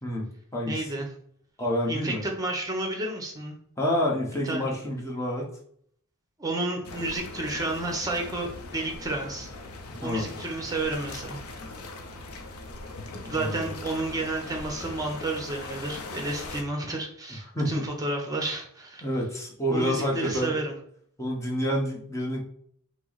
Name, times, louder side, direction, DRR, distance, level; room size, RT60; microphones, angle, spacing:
voice 1, 0.0-0.8 1.6-2.2 3.8-5.5 10.0-10.3 13.2-13.6 17.5-17.9 19.0-20.5 21.2-22.4, equal, 15° left, -2 dB, 1.0 m, -28 dB
voice 2, 0.7-1.1 1.9-3.6 4.4-4.7 6.4-9.5 10.0-11.4 13.2-19.1 19.7-20.7, right 2 dB, 15° right, 2 dB, 0.9 m, -31 dB
sound 1, 6.8-16.6, left 2 dB, 80° left, 0.6 m, -40 dB
5.6 x 2.1 x 4.0 m, 0.64 s
head